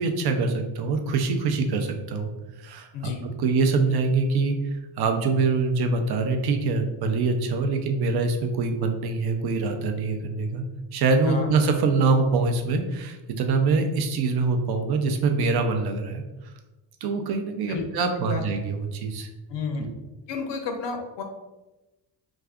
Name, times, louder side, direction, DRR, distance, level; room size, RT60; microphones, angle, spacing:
voice 1, 0.0-2.3 2.6-4.6 5.0-10.7 10.9-16.2 17.0-19.3 19.8-19.9, right 4 dB, 60° right, 5 dB, 0.6 m, -24 dB
voice 2, 19.5-19.8 20.3-21.2, left 5 dB, 75° left, 4 dB, 0.6 m, -31 dB
2.5 x 2.4 x 3.4 m, 1.1 s
cardioid pair, 95°, 43 cm